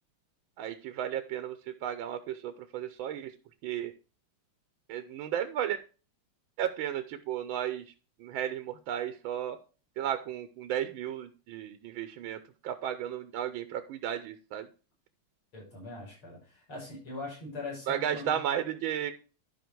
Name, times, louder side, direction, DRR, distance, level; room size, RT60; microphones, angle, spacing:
voice 1, 0.6-3.3 3.6-3.9 4.9-5.8 6.6-7.9 8.2-9.6 10.0-14.7 17.9-19.1, right 10 dB, 75° right, 10 dB, 1.4 m, -34 dB
voice 2, 15.5-18.3, left 2 dB, 70° left, -4 dB, 6.4 m, -41 dB
11.5 x 5.3 x 4.5 m, 0.35 s
omnidirectional pair, 2.4 m